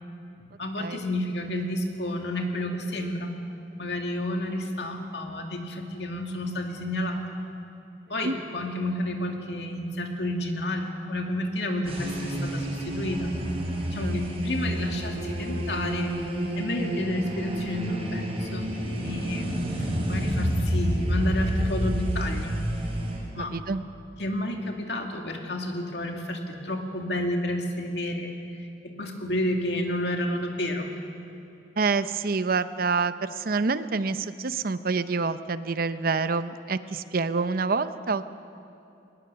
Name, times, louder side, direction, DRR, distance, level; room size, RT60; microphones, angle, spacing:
voice 1, 0.4-3.3 3.8-7.2 8.1-13.3 13.9-16.1 16.6-18.7 19.0-19.5 20.1-22.5 23.4-23.5 24.2-28.3 28.6-30.9, left 1 dB, 70° left, 2 dB, 2.4 m, -30 dB
sound 1, 11.9-23.2, equal, 35° right, 4.4 m, -29 dB
voice 2, 23.5-23.8 31.8-38.3, right 4 dB, 55° right, 12 dB, 0.7 m, -27 dB
22.0 x 19.5 x 6.9 m, 2.8 s
head